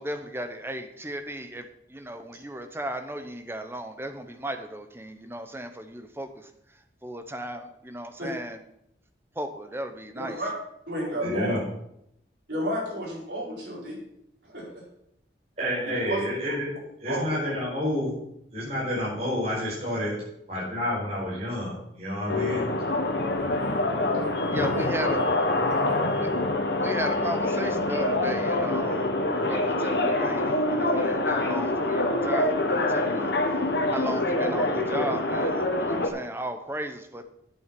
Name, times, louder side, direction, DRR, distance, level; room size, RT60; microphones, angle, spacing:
voice 1, 0.0-1.7 1.9-6.3 7.0-8.6 9.4-10.4 24.5-25.1 26.2-26.3 26.7-29.1 29.3-33.3 33.9-37.2, right 1 dB, 15° right, 7 dB, 0.8 m, -35 dB
voice 2, 10.1-10.5 10.9-11.6 12.5-14.0 14.4-14.7 16.1-16.2 17.1-17.4 23.3-24.9 25.6-26.0, right 1 dB, 70° right, -4 dB, 4.4 m, -32 dB
voice 3, 11.2-11.6 15.6-16.7 17.0-18.1 18.5-20.2 20.5-22.6, left 1 dB, 35° right, -8 dB, 4.6 m, -29 dB
sound 1, 22.3-36.1, left 2 dB, 65° left, 1.4 m, -25 dB
8.6 x 7.8 x 6.0 m, 0.78 s
head